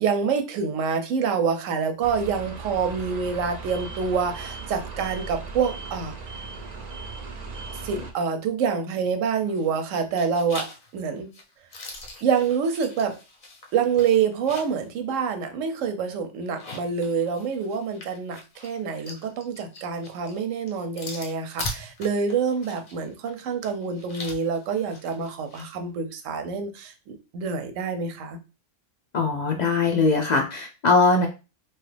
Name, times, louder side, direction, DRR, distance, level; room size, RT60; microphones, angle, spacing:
voice 1, 0.0-6.1 7.8-10.7 10.9-11.3 12.2-13.2 13.7-28.4, right 6 dB, 90° right, 7 dB, 0.9 m, -26 dB
sound 1, 2.0-8.1, right 4 dB, 55° right, 0.4 m, -37 dB
sound 2, 9.4-9.9 10.2-14.9 15.2-15.3 16.4-25.7, left 2 dB, 45° left, 0.7 m, -41 dB
voice 2, 29.1-31.3, left 3 dB, 75° left, 3 dB, 0.4 m, -21 dB
2.9 x 2.4 x 3.2 m, 0.31 s
omnidirectional pair, 1.3 m